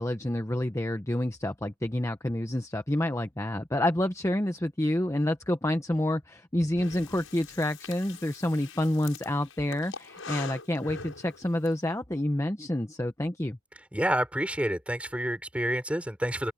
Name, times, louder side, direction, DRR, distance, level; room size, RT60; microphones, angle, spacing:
voice 1, 0.0-13.6, left 1 dB, 15° left, 0.9 m, -28 dB
Breathing, 6.8-11.7, left 4 dB, 75° left, 7.0 m, -43 dB
voice 2, 13.9-16.5, right 1 dB, 5° right, 5.4 m, -29 dB
head